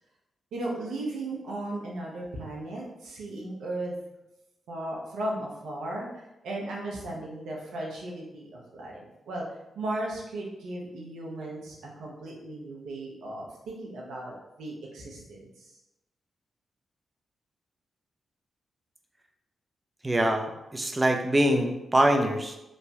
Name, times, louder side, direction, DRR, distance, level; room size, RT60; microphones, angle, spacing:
voice 1, 0.5-3.9 4.7-15.7, right 1 dB, 80° right, -3 dB, 0.7 m, -36 dB
voice 2, 20.0-22.6, right 1 dB, 25° right, 4 dB, 0.5 m, -24 dB
3.1 x 2.1 x 2.8 m, 0.92 s
supercardioid pair, 40°, 0 cm